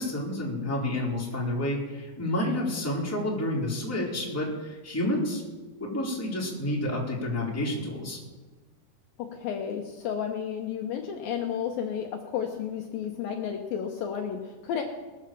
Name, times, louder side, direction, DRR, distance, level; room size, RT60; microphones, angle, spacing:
voice 1, 0.0-5.4 5.8-8.2, left 1 dB, 5° left, -4 dB, 2.6 m, -29 dB
voice 2, 9.2-14.8, left 8 dB, 70° left, 2 dB, 2.5 m, -32 dB
20.0 x 7.3 x 7.5 m, 1.2 s
omnidirectional pair, 4.7 m